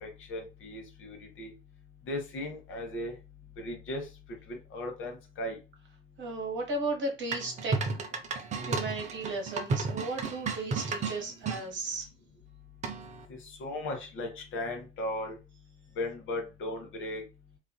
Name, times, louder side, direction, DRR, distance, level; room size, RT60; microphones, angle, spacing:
voice 1, 0.0-1.5 2.1-3.2 3.6-4.1 4.5-5.6 13.3-15.4 16.0-17.2, left 1 dB, 45° left, 3 dB, 0.9 m, -37 dB
voice 2, 6.2-7.8 8.6-12.1, right 2 dB, 40° right, 2 dB, 1.0 m, -35 dB
sound 1, 7.3-11.6 12.8-13.2, right 4 dB, 25° right, 0.4 m, -33 dB
2.4 x 2.4 x 2.2 m, 0.28 s
figure-of-eight pair, 65°, 29 cm